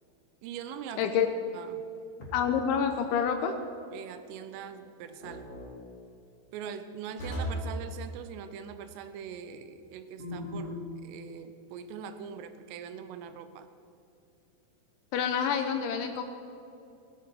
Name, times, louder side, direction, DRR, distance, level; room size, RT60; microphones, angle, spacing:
voice 1, 0.4-1.2 1.5-1.9 3.9-5.5 6.5-13.7, right 8 dB, 80° right, 10 dB, 3.4 m, -42 dB
sound 1, 2.2-2.7 5.2-5.7 7.2-7.7 10.2-10.9, equal, 30° left, 3.4 m, -37 dB
voice 2, 2.3-3.6 15.1-16.2, left 7 dB, 75° left, 6 dB, 3.0 m, -27 dB
17.0 x 16.5 x 4.8 m, 2.7 s
omnidirectional pair, 5.9 m